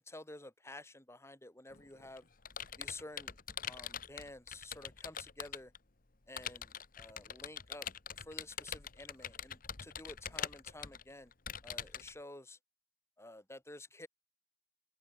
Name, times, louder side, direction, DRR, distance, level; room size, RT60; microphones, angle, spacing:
voice 1, 0.0-2.2 2.8-3.3 3.6-5.7 6.3-7.9 8.2-11.3 11.6-12.6 13.2-14.1, left 2 dB, 15° left, 3.3 m, -51 dB
Computer keyboard, 1.7-5.8 6.4-12.1, left 8 dB, 50° left, 1.4 m, -43 dB
head